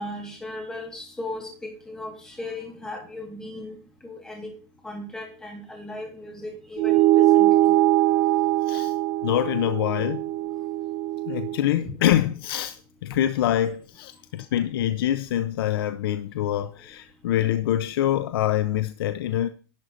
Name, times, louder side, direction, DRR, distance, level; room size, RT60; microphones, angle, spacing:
voice 1, 0.0-3.8 4.0-4.5 4.8-7.7, left 1 dB, 5° left, 2.3 m, -37 dB
sound 1, 6.8-11.6, right 14 dB, 40° right, 1.0 m, -21 dB
voice 2, 9.2-10.2 11.3-19.5, left 12 dB, 65° left, 0.6 m, -25 dB
11.5 x 4.0 x 7.7 m
supercardioid pair, 175°, 13 cm